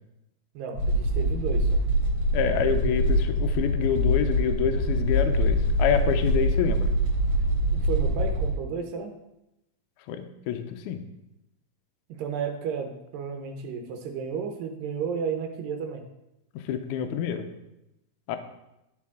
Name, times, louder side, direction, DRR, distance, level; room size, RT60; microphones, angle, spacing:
voice 1, 0.5-1.7 7.7-9.1 12.1-16.0, right 6 dB, 75° right, 5 dB, 2.4 m, -32 dB
sound 1, 0.8-8.5, equal, 45° right, 2.6 m, -24 dB
voice 2, 2.3-6.9 10.1-11.0 16.7-17.5 18.3-18.4, left 8 dB, 80° left, 6 dB, 1.8 m, -27 dB
12.0 x 4.7 x 3.6 m, 0.89 s
omnidirectional pair, 4.2 m